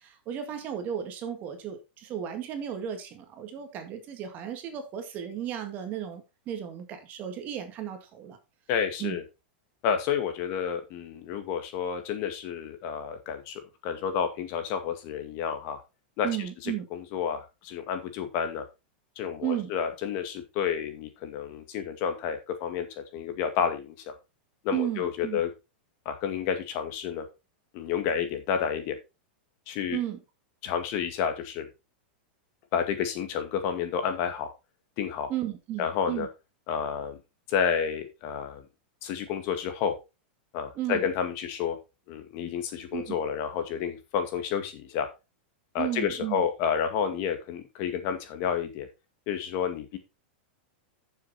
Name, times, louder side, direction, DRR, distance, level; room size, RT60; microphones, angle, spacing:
voice 1, 0.0-8.4 9.0-9.2 16.2-16.8 19.4-19.7 24.7-25.4 29.9-30.2 35.3-36.3 40.7-41.1 42.9-43.2 45.8-46.4, right 11 dB, 30° right, 7 dB, 2.0 m, -34 dB
voice 2, 8.7-9.2 9.8-15.8 16.2-16.3 16.6-18.6 19.2-24.1 24.6-25.5 26.1-27.3 27.7-29.0 29.7-30.0 30.6-31.7 32.7-34.5 35.0-35.3 35.8-36.3 36.7-37.2 37.5-38.6 39.0-40.0 40.5-41.8 42.1-45.1 45.7-48.9 49.3-50.0, left 7 dB, 40° left, 7 dB, 2.0 m, -30 dB
9.3 x 7.0 x 4.3 m, 0.26 s
supercardioid pair, 155°, 6 cm